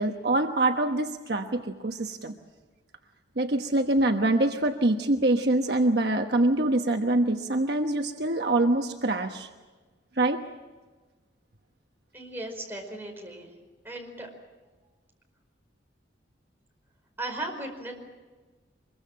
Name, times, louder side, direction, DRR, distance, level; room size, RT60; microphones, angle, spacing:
voice 1, 0.0-2.3 3.4-9.5 10.2-10.4, right 2 dB, 60° right, 4 dB, 1.2 m, -25 dB
voice 2, 12.1-13.5 13.8-14.3 17.2-17.9, right 2 dB, 10° right, 1 dB, 4.9 m, -36 dB
24.5 x 22.5 x 7.5 m, 1.3 s
head